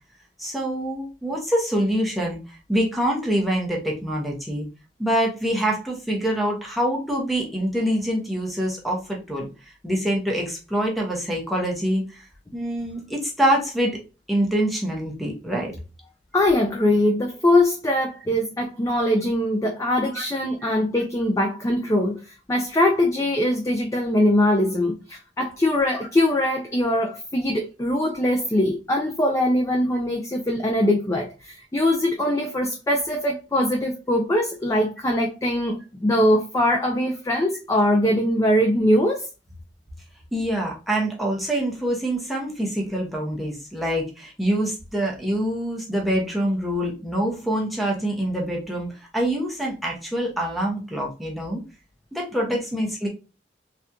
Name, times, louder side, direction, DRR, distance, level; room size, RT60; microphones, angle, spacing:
voice 1, 0.4-4.7 5.0-9.5 9.8-12.2 12.5-14.0 14.3-15.7 20.1-20.2 20.6-20.7 40.3-51.6 52.1-53.1, right 1 dB, ahead, 0.8 m, -25 dB
voice 2, 16.3-22.2 22.5-39.3, left 1 dB, 20° left, 0.4 m, -22 dB
3.4 x 2.4 x 2.8 m
head